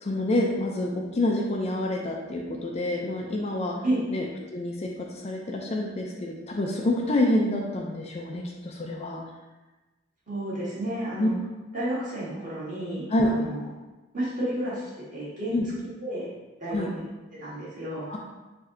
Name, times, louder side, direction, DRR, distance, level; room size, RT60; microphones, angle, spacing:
voice 1, 0.0-3.7 4.1-4.3 4.5-9.2 11.2-11.3 13.1-13.3 15.5-15.7 16.7-16.9 18.1-18.2, left 1 dB, 30° left, 0 dB, 0.4 m, -27 dB
voice 2, 10.3-11.3 11.7-13.7 14.1-15.6 16.0-16.3 16.6-17.0 17.4-18.1, right 1 dB, 40° right, -9 dB, 1.4 m, -31 dB
3.2 x 2.7 x 3.6 m, 1.1 s
head